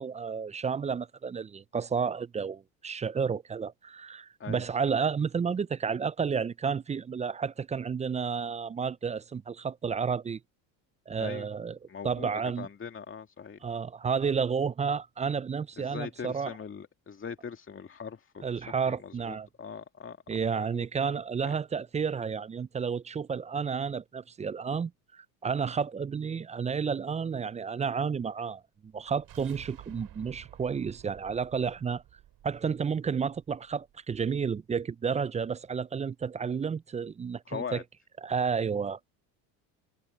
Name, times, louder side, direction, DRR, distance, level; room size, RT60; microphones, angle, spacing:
voice 1, 0.0-10.4 11.1-11.8 12.0-12.7 13.6-16.5 18.4-19.5 20.3-32.0 32.4-37.8 38.2-39.0, right 6 dB, 15° right, 0.4 m, -31 dB
voice 2, 11.9-12.3 12.6-13.6 15.8-20.2 20.5-20.9 21.1-21.5 37.5-37.8, left 6 dB, 30° left, 2.2 m, -41 dB
sound 1, 28.9-34.0, right 13 dB, 55° right, 7.5 m, -53 dB
hypercardioid pair, 80°, 43 cm